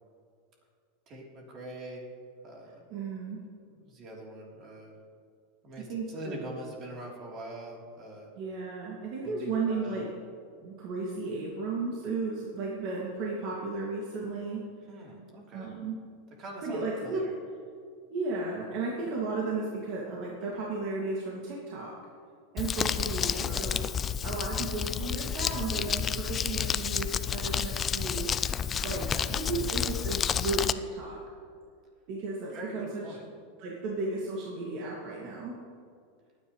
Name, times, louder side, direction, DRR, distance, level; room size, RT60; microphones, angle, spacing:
voice 1, 1.1-2.1 2.4-2.8 3.8-4.9 5.6-8.3 9.2-10.1 14.9-15.7 16.4-17.3 23.4-23.6 29.1-29.3 32.5-33.2, right 1 dB, 40° right, -2 dB, 3.6 m, -43 dB
voice 2, 2.9-3.4 5.8-6.4 8.4-10.1 10.6-14.6 15.5-16.0 16.6-17.3 18.1-21.9 22.5-23.8 24.2-28.3 28.8-31.2 32.1-33.0 33.6-35.6, right 3 dB, 55° right, -4 dB, 2.3 m, -34 dB
Crumpling crinkling, 22.6-30.7, left 8 dB, 25° left, 0.4 m, -30 dB
21.0 x 9.8 x 3.3 m, 2.2 s
supercardioid pair, 135°, 0 cm